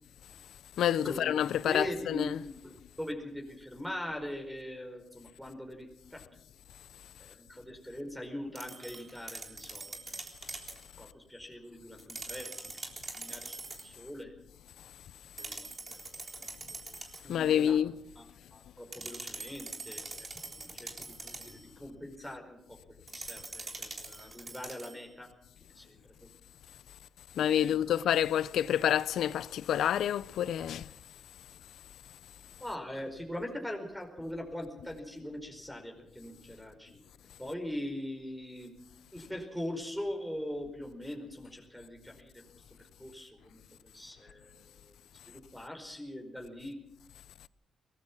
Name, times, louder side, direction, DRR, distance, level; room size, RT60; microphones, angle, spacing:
voice 1, 0.8-2.4 17.3-17.9 27.4-30.9, left 10 dB, 90° left, 0.7 m, -28 dB
voice 2, 1.7-6.2 7.2-10.0 11.0-12.8 13.1-13.6 13.8-14.3 15.4-16.0 16.7-17.0 17.2-17.8 18.1-18.2 18.5-25.3 25.7-26.3 27.4-27.9 32.6-37.0 37.4-38.7 39.1-42.3 43.0-44.8 45.3-46.8, left 1 dB, ahead, 4.9 m, -42 dB
sound 1, 8.6-10.8 12.0-13.9 15.4-17.3 18.9-21.6 23.1-25.1, right 3 dB, 30° right, 3.6 m, -44 dB
23.0 x 19.0 x 6.1 m
cardioid pair, 115°, 0 cm